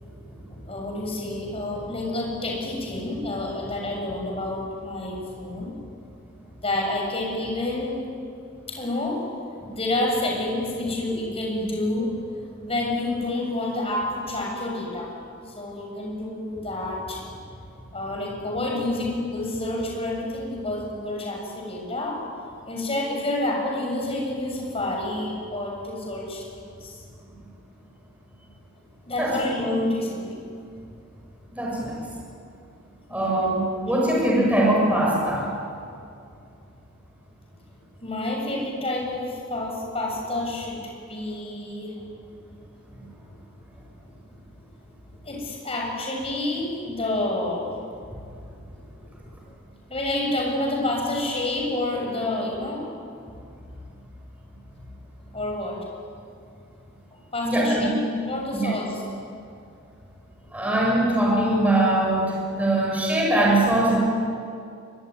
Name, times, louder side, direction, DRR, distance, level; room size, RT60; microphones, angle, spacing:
voice 1, 0.0-5.8 6.6-8.0 8.7-9.2 9.7-15.1 15.5-22.2 22.7-27.0 29.0-30.4 33.1-33.3 38.0-40.8 41.1-42.3 43.3-43.4 44.0-44.1 45.2-47.7 48.7-49.5 49.9-52.9 55.3-55.8 57.1-58.0 58.3-59.0, left 1 dB, 30° left, -1 dB, 7.2 m, -29 dB
voice 2, 31.5-31.9 33.1-35.5 57.4-57.9 58.5-58.7 60.5-64.0, right 1 dB, 10° right, -3 dB, 6.7 m, -22 dB
24.5 x 23.0 x 9.8 m, 2.4 s
head